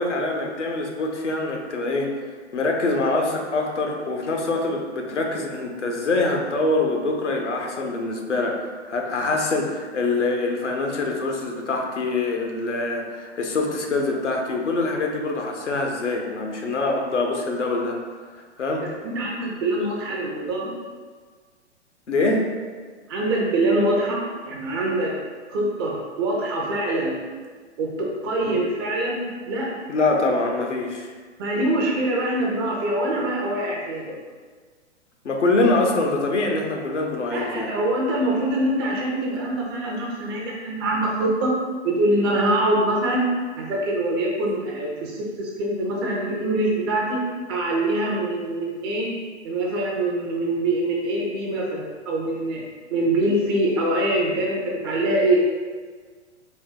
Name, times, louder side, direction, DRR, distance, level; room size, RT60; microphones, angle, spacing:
voice 1, 0.0-2.2 2.5-18.0 18.6-18.9 22.1-22.5 29.9-31.1 35.2-37.7, left 2 dB, 80° left, 1 dB, 0.7 m, -24 dB
voice 2, 18.8-20.7 23.1-25.1 25.5-27.2 27.8-29.7 31.4-34.2 37.3-41.5 41.8-43.3 43.6-47.2 47.5-49.1 49.4-52.6 52.9-55.5, right 1 dB, 20° right, -2 dB, 0.4 m, -24 dB
4.0 x 2.2 x 3.8 m, 1.5 s
figure-of-eight pair, 110°, 35 cm